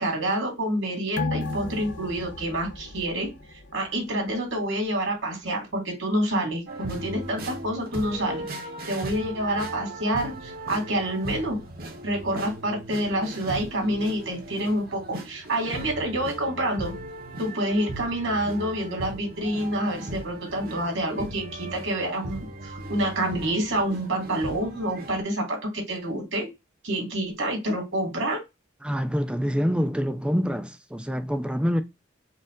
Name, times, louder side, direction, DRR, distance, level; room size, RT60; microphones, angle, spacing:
voice 1, 0.0-3.3 3.7-8.4 8.9-11.6 12.0-16.9 17.4-26.5 26.8-28.4, right 1 dB, 70° right, 2.0 m, -27 dB
sound 1, 1.2-4.1 4.4-4.5, left 3 dB, 60° left, 0.7 m, -34 dB
sound 2, 6.7-25.2, right 1 dB, 50° right, 0.9 m, -38 dB
voice 2, 28.8-31.8, equal, 5° right, 0.4 m, -26 dB
4.4 x 2.4 x 3.6 m
head